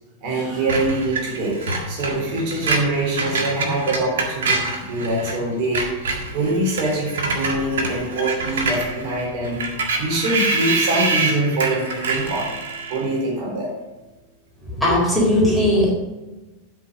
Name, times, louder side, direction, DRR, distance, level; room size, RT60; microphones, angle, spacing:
voice 1, 0.2-1.6 1.9-5.9 6.3-9.6 10.0-12.5 12.9-13.7, right 2 dB, 45° right, -2 dB, 3.7 m, -24 dB
Screech, 0.7-5.4 5.6-13.1, right 3 dB, 60° right, 1.8 m, -26 dB
voice 2, 14.8-15.9, left 1 dB, ahead, -5 dB, 4.1 m, -17 dB
12.5 x 5.7 x 5.3 m, 1.1 s
figure-of-eight pair, 90°, 0 cm